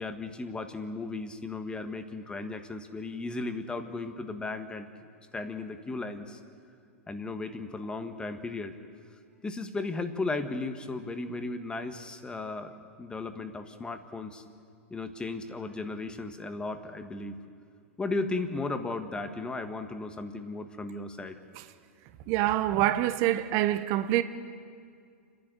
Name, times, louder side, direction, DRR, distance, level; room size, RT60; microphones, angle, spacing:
voice 1, 0.0-4.9 5.3-6.4 7.1-8.8 9.4-14.4 14.9-17.4 18.0-21.4, left 3 dB, 10° left, 1.5 m, -35 dB
voice 2, 22.3-24.2, right 14 dB, 45° right, 1.0 m, -26 dB
30.0 x 11.0 x 8.0 m
figure-of-eight pair, 100°, 7 cm